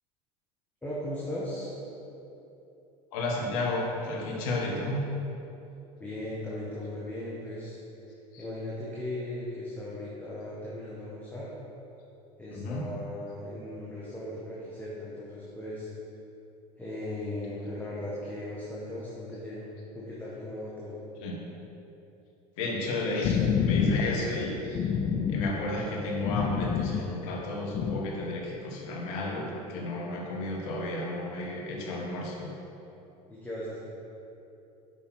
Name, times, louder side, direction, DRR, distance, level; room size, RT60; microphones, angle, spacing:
voice 1, 0.8-1.7 6.0-7.8 8.3-11.5 12.4-15.9 16.8-19.7 19.9-21.0 33.3-33.8, left 1 dB, 10° left, -7 dB, 1.3 m, -37 dB
voice 2, 3.1-5.0 8.3-8.5 12.5-12.8 21.2-21.4 22.6-24.9 25.3-32.5, left 2 dB, 60° left, -1 dB, 1.2 m, -32 dB
sound 1, 22.8-28.0, left 7 dB, 30° left, 0.4 m, -28 dB
6.0 x 5.5 x 4.3 m, 2.9 s
figure-of-eight pair, 75°, 21 cm